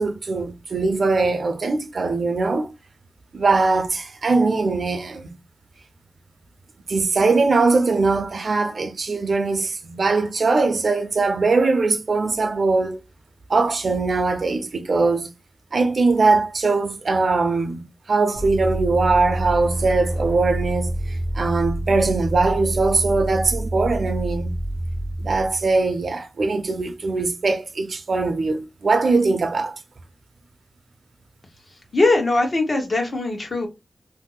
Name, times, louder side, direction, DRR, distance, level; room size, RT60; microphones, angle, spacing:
voice 1, 0.0-2.7 3.3-5.3 6.9-13.0 13.5-15.3 15.7-17.8 18.1-24.5 25.2-29.7, right 3 dB, 65° right, 0.5 m, -21 dB
sound 1, 18.3-25.8, right 1 dB, 80° left, 1.4 m, -27 dB
voice 2, 31.9-33.7, left 2 dB, 55° left, 1.0 m, -20 dB
2.7 x 2.0 x 3.8 m
wide cardioid pair, 90°, 0 cm